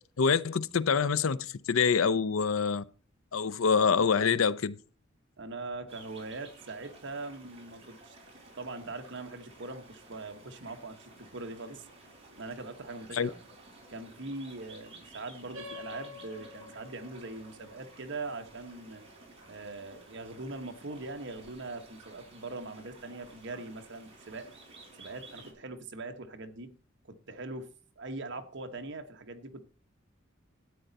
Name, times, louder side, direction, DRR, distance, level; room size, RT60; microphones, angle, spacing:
voice 1, 0.2-2.8 3.3-4.7 13.1-13.3, left 6 dB, 80° left, 0.6 m, -26 dB
voice 2, 5.4-8.2 8.5-11.8 12.4-13.4 13.9-19.0 19.5-24.5 25.0-26.8 27.0-29.6, right 3 dB, 60° right, 1.3 m, -41 dB
sound 1, 5.9-25.5, right 2 dB, 30° right, 4.6 m, -54 dB
sound 2, 15.5-20.5, left 4 dB, 80° right, 1.9 m, -50 dB
12.5 x 9.0 x 4.1 m
head